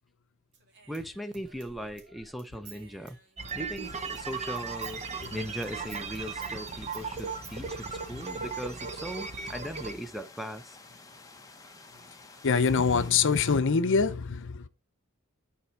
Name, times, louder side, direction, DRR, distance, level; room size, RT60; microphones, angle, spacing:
Human voice / Scissors, 0.5-4.3 4.6-7.6, right 5 dB, 55° right, 2.0 m, -53 dB
voice 1, 0.9-3.2 3.5-5.0 5.3-10.8, equal, ahead, 0.5 m, -39 dB
sound 1, 3.4-9.9, right 5 dB, 30° right, 0.8 m, -37 dB
sound 2, 3.8-13.5, left 3 dB, 15° left, 0.9 m, -51 dB
voice 2, 8.1-8.5 12.4-14.7, left 5 dB, 60° left, 0.6 m, -25 dB
9.6 x 4.4 x 4.5 m
head